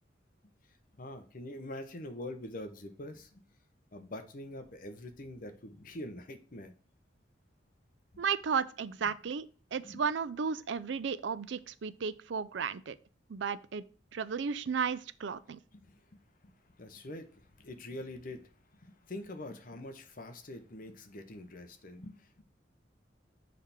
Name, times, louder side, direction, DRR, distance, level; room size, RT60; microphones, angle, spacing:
voice 1, 0.9-3.4 3.9-6.7 8.1-8.2 9.1-9.2 9.8-10.0 15.7-16.0 16.4-22.4, left 1 dB, 45° left, 0.8 m, -45 dB
voice 2, 8.2-9.5 9.7-13.0 13.3-13.8 14.1-15.6, right 6 dB, 65° right, 0.4 m, -34 dB
6.4 x 3.4 x 5.8 m
head